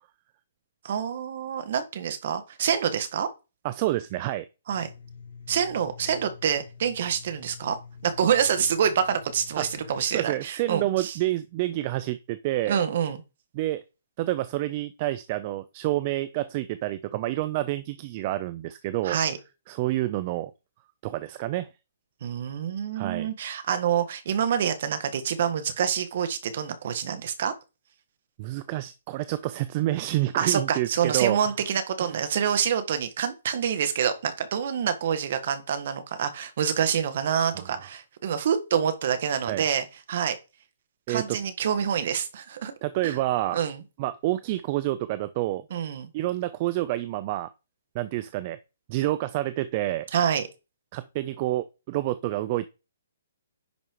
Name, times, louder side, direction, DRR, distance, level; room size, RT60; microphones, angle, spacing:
voice 1, 0.8-3.3 4.7-4.9 5.5-7.8 8.0-11.2 12.7-13.2 19.0-19.4 22.2-27.5 30.3-40.4 41.1-42.7 43.0-43.2 43.5-43.8 45.7-46.1 50.1-50.5, right 8 dB, 40° right, 1.7 m, -27 dB
voice 2, 3.6-4.5 9.6-9.7 10.1-12.8 13.5-13.8 14.2-19.2 19.7-20.5 21.0-21.7 23.0-23.3 28.4-31.4 32.1-32.2 37.5-37.7 39.4-39.6 41.1-41.4 42.8-43.6 44.0-45.6 46.1-47.5 47.9-48.6 48.9-50.1 50.9-52.7, right 16 dB, 25° right, 0.5 m, -28 dB
sound 1, 4.7-10.1, left 5 dB, 55° left, 4.2 m, -46 dB
10.5 x 5.6 x 4.7 m
hypercardioid pair, 175°, 0 cm